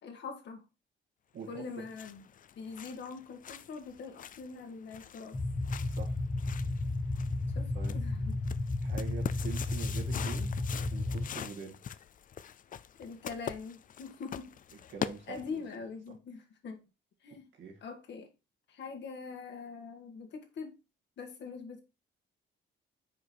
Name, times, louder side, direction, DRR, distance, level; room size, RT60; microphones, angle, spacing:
voice 1, 0.0-0.7 1.5-2.2 2.5-5.4 7.5-8.4 13.0-14.5 15.3-16.8 17.2-17.5 17.8-18.3 18.7-20.8 21.2-21.8, left 5 dB, 65° left, 1.6 m, -43 dB
sound 1, 1.6-15.8, left 9 dB, 45° left, 0.4 m, -44 dB
sound 2, 5.3-11.3, left 2 dB, 20° left, 0.9 m, -33 dB
voice 2, 5.9-6.2 7.7-8.0 8.8-10.6 10.9-11.8 14.9-16.2 17.6-17.8, right 6 dB, 70° right, 2.0 m, -44 dB
5.1 x 4.7 x 4.3 m
cardioid pair, 90°, 20 cm